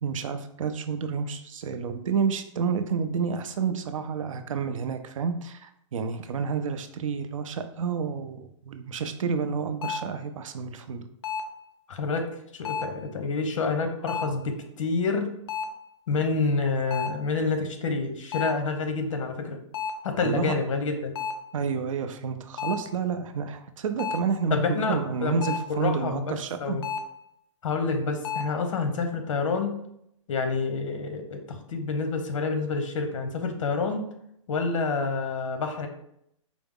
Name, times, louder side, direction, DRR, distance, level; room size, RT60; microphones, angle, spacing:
voice 1, 0.0-11.0 20.2-20.6 21.5-26.8, right 6 dB, 80° right, 8 dB, 0.5 m, -29 dB
sound 1, 9.8-10.2 11.2-11.6 12.7-13.1 14.1-14.5 15.5-15.9 16.9-17.3 18.3-18.7 19.7-20.1 21.2-21.5 22.6-22.9 24.0-24.4 25.4-25.8 26.8-27.2 28.2-28.5, left 6 dB, 50° left, 0.4 m, -32 dB
voice 2, 11.9-12.3 12.5-15.3 16.1-19.6 20.0-21.1 24.5-25.4 25.7-26.3 26.6-26.8 27.6-29.7 30.3-34.1 34.5-35.9, left 4 dB, 75° left, 6 dB, 0.8 m, -28 dB
4.6 x 2.0 x 3.5 m, 0.76 s
hypercardioid pair, 170°, 17 cm